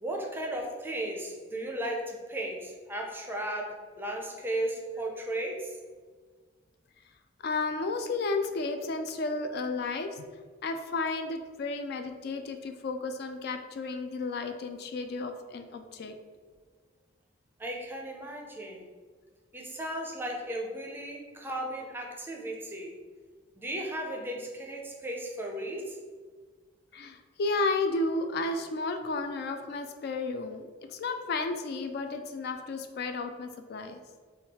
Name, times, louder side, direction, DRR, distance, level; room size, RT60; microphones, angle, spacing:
voice 1, 0.0-5.8 17.6-18.8 19.5-22.9 23.6-26.0, right 1 dB, 10° right, 0 dB, 0.5 m, -35 dB
voice 2, 7.4-10.3 10.6-16.2 26.9-30.6 30.9-34.0, left 3 dB, 60° left, 6 dB, 0.3 m, -32 dB
3.5 x 2.3 x 4.1 m, 1.5 s
head